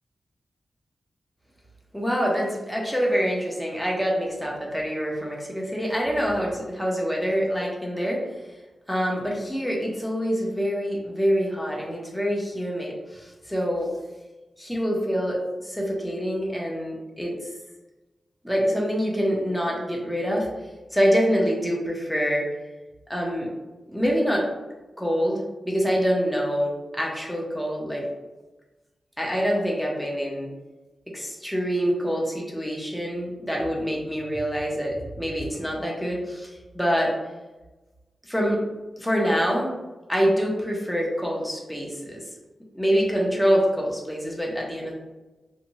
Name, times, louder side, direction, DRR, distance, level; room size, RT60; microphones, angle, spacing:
voice 1, 1.9-8.2 8.9-13.9 14.6-17.5 18.4-20.5 20.9-22.5 23.1-23.5 23.9-24.4 25.0-28.1 29.2-30.5 31.1-37.1 38.2-38.6 39.0-39.7 40.1-42.2 42.7-44.9, equal, ahead, -3 dB, 0.6 m, -25 dB
2.6 x 2.1 x 2.8 m, 1.1 s
wide cardioid pair, 95°, 0 cm